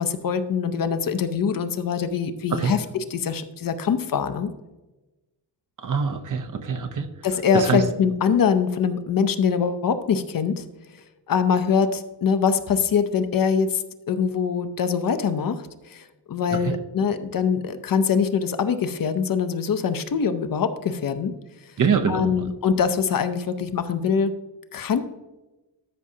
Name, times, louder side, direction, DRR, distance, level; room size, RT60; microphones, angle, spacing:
voice 1, 0.0-2.8 3.1-4.5 7.2-10.6 11.3-21.3 22.1-24.3 24.7-25.0, left 6 dB, 50° left, 10 dB, 0.7 m, -23 dB
voice 2, 5.8-7.1 7.5-7.8 16.5-16.7 21.8-22.5, right 6 dB, 50° right, 7 dB, 0.7 m, -24 dB
13.0 x 6.1 x 2.7 m, 1.1 s
wide cardioid pair, 175°, 42 cm